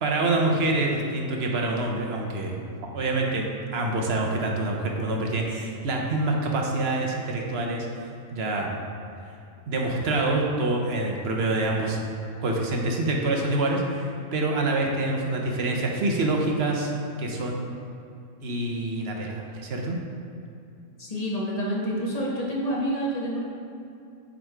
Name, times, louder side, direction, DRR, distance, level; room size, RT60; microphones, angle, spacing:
voice 1, 0.0-2.6 2.9-7.9 8.3-8.7 9.7-12.0 12.4-16.9 17.2-17.6 18.4-20.0, right 2 dB, 55° right, 0 dB, 1.0 m, -26 dB
voice 2, 21.0-23.4, equal, 30° left, -5 dB, 1.2 m, -28 dB
7.8 x 3.8 x 4.6 m, 2.6 s
omnidirectional pair, 1.3 m